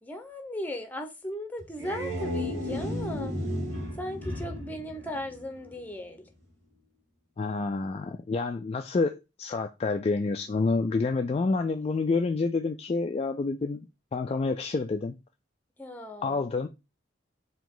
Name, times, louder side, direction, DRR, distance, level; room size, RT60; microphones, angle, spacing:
voice 1, 0.0-3.4 4.0-6.2 15.8-16.5, left 1 dB, 10° left, 0.8 m, -37 dB
sound 1, 1.6-5.8, left 1 dB, 65° right, 1.9 m, -34 dB
voice 2, 7.4-15.2 16.2-16.7, left 3 dB, 35° left, 0.3 m, -28 dB
4.8 x 2.9 x 3.8 m
head